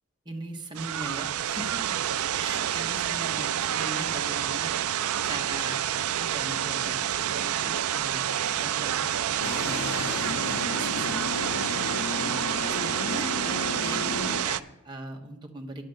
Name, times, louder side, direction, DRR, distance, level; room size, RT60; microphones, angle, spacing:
voice 1, 0.2-2.0 2.3-4.8 5.2-9.3 9.6-11.6 12.2-12.4 12.7-15.8, right 2 dB, 20° right, 2 dB, 1.3 m, -40 dB
sound 1, 0.7-14.6, right 10 dB, 80° right, 0.4 m, -28 dB
sound 2, 9.4-14.4, left 3 dB, 85° left, 0.8 m, -34 dB
10.5 x 6.6 x 7.9 m, 0.96 s
head